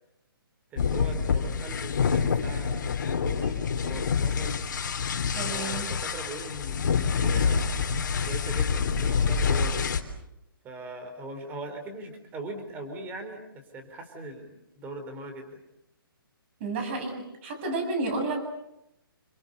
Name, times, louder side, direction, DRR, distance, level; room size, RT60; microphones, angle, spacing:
voice 1, 0.7-3.6 3.8-4.6 5.5-7.8 8.3-9.8 10.6-15.5, right 2 dB, 15° right, 6 dB, 4.3 m, -41 dB
sound 1, 0.8-10.0, left 6 dB, 55° left, 3.5 m, -27 dB
voice 2, 5.3-5.9 16.6-17.2 17.4-18.4, right 2 dB, 30° right, 6 dB, 7.8 m, -30 dB
29.0 x 26.0 x 7.0 m, 0.83 s
hypercardioid pair, 165°, 12 cm